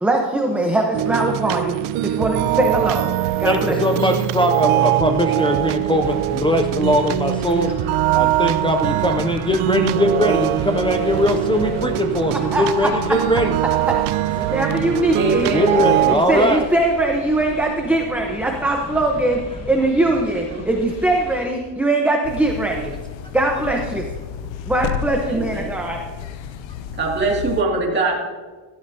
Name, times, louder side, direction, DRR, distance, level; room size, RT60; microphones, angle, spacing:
voice 1, 0.0-1.7 2.2-3.1 3.4-3.8 12.5-12.9 14.4-15.5 16.1-22.9 23.3-24.1 24.7-26.0, right 2 dB, 5° right, 0.8 m, -21 dB
sound 1, 0.9-16.2, right 14 dB, 80° right, 0.6 m, -22 dB
voice 2, 3.4-13.6 14.9-15.0 15.5-16.7, left 1 dB, 10° left, 0.3 m, -20 dB
sound 2, 5.7-21.5, left 2 dB, 30° left, 1.1 m, -38 dB
voice 3, 15.1-16.6 20.5-20.6 25.2-25.7 26.9-28.2, right 3 dB, 20° right, 2.2 m, -23 dB
sound 3, 22.2-27.6, left 8 dB, 65° left, 0.8 m, -32 dB
15.5 x 13.0 x 2.7 m
cardioid pair, 155°, 48 cm